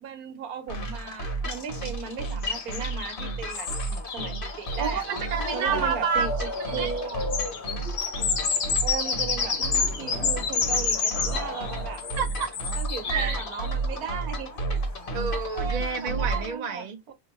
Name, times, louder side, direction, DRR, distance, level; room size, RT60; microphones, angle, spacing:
voice 1, 0.0-5.2 5.5-7.3 8.8-12.0 12.7-14.8 15.5-17.1, right 7 dB, 75° right, 1.3 m, -37 dB
sound 1, 0.7-16.6, right 2 dB, 40° left, 1.0 m, -32 dB
sound 2, 2.4-5.3 6.2-6.3 6.5-13.7 15.5-15.6 16.0-16.2, left 6 dB, 60° left, 1.1 m, -30 dB
voice 2, 4.8-6.3 6.7-6.9 12.2-12.5 13.0-13.4 15.1-17.0, right 6 dB, 35° right, 0.7 m, -29 dB
sound 3, 4.9-12.3 12.6-16.5, left 2 dB, 90° left, 2.1 m, -38 dB
5.6 x 2.1 x 2.9 m
omnidirectional pair, 1.6 m